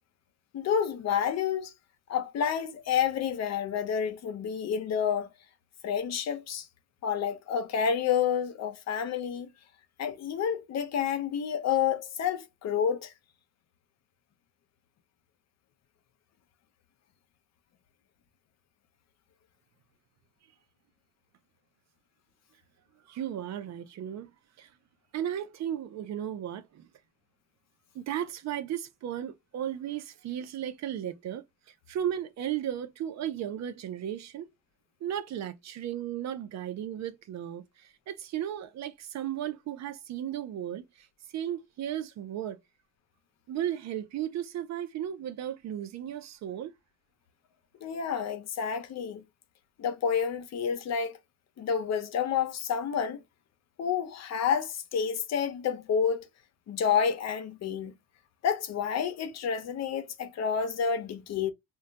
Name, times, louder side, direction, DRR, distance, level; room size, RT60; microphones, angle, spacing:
voice 1, 0.5-1.7 2.1-5.3 5.8-6.7 7.0-9.5 10.0-13.1 47.8-49.2 49.8-51.2 51.6-53.2 53.8-56.2 56.7-57.9 58.4-61.5, left 7 dB, 60° left, 0.6 m, -29 dB
voice 2, 23.1-24.3 24.6-24.7 25.1-26.9 27.9-31.4 31.9-34.5 35.0-42.6 43.5-46.7, right 10 dB, 65° right, 0.5 m, -35 dB
2.3 x 2.2 x 3.9 m
cardioid pair, 90°, 30 cm